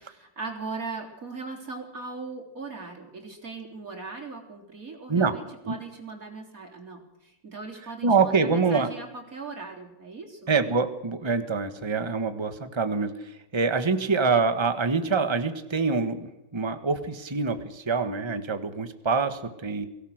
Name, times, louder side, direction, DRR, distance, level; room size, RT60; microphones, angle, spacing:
voice 1, 0.0-10.5, right 4 dB, 45° right, 2 dB, 4.1 m, -39 dB
voice 2, 8.0-8.9 10.5-13.1 13.5-19.9, right 4 dB, 15° right, 9 dB, 1.4 m, -25 dB
24.0 x 17.0 x 6.6 m, 0.92 s
omnidirectional pair, 2.1 m